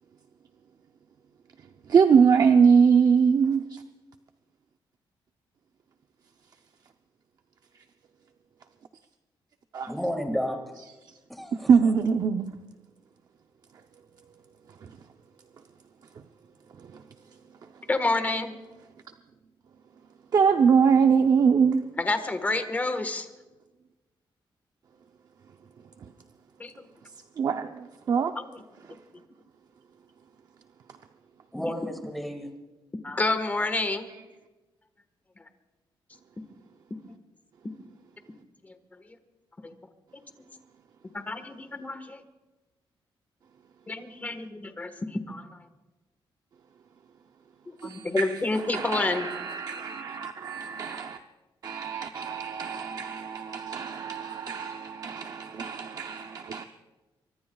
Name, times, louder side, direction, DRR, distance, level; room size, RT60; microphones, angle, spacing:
voice 1, 1.9-3.8 9.7-9.9 11.5-12.6 14.8-15.0 16.8-17.0 20.3-21.8 26.0-26.1 27.4-28.3 47.8-51.2 51.6-56.6, right 6 dB, 45° right, 0.6 m, -23 dB
voice 2, 9.9-10.8 11.3-11.9 31.5-32.5, equal, ahead, 2.0 m, -32 dB
voice 3, 17.9-18.5 22.0-23.3 26.6-26.7 28.3-28.4 31.6-31.7 33.0-34.1 39.6-39.7 41.1-42.2 43.9-45.5 47.8-49.2, left 2 dB, 20° left, 1.4 m, -28 dB
24.0 x 23.5 x 2.4 m
wide cardioid pair, 170°, 9 cm